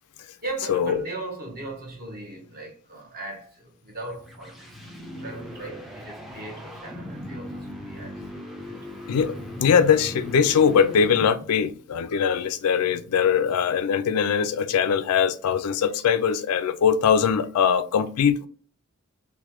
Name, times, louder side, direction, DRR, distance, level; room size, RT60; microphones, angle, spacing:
voice 1, 0.4-4.9 5.2-8.2 8.6-8.9, right 2 dB, 40° right, 0.8 m, -38 dB
sound 1, 3.8-11.6, left 1 dB, ahead, 0.4 m, -39 dB
voice 2, 9.6-18.5, left 7 dB, 80° left, 0.3 m, -21 dB
3.0 x 2.1 x 3.0 m
head